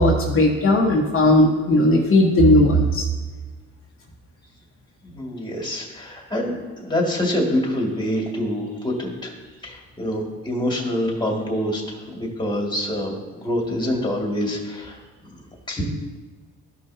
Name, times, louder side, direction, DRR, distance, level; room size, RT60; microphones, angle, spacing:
voice 1, 0.0-3.0, left 1 dB, 45° left, -2 dB, 1.3 m, -17 dB
voice 2, 5.0-6.5 6.8-9.3 9.6-15.0 15.7-15.8, left 1 dB, 15° left, -1 dB, 2.1 m, -26 dB
13.0 x 5.5 x 2.8 m, 1.3 s
cardioid pair, 90°, 30 cm